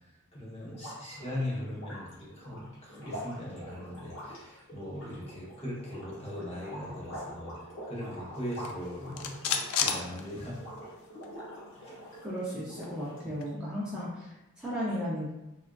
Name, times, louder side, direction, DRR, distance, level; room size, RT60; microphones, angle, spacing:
voice 1, 0.3-9.5 9.8-10.6 11.7-12.0, left 1 dB, 30° left, -6 dB, 0.7 m, -39 dB
sound 1, 0.7-12.3 12.7-13.5, equal, 55° left, 1.0 m, -45 dB
sound 2, 8.5-10.9 11.2-11.3 11.6-13.5, left 7 dB, 75° left, 0.3 m, -35 dB
voice 2, 12.2-15.3, equal, 5° right, -9 dB, 0.5 m, -35 dB
3.5 x 2.3 x 2.2 m, 0.94 s
head